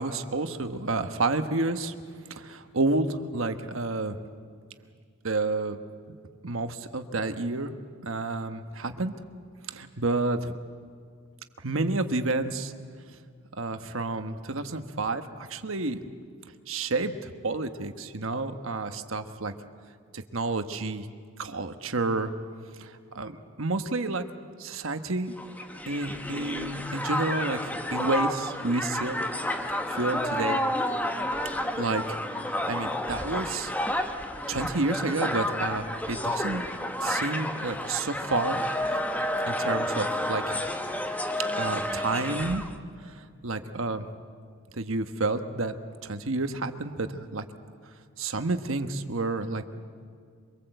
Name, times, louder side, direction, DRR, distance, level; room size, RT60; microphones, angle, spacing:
voice 1, 0.0-1.9 2.3-4.2 5.2-5.8 6.4-7.7 8.0-9.1 9.7-10.5 11.6-12.7 13.6-16.0 16.7-19.5 20.1-21.1 21.4-22.3 22.8-23.3 23.6-24.3 24.6-25.4 25.9-29.2 29.9-30.6 31.8-33.7 34.5-36.6 37.0-38.6 39.5-40.6 41.6-42.7 43.0-44.1 44.7-45.8 46.0-47.4 48.2-49.6, right 3 dB, 70° right, 8 dB, 1.3 m, -30 dB
Crowd, 25.4-42.7, left 1 dB, 5° left, 1.1 m, -30 dB
25.0 x 23.5 x 8.0 m, 2.1 s
head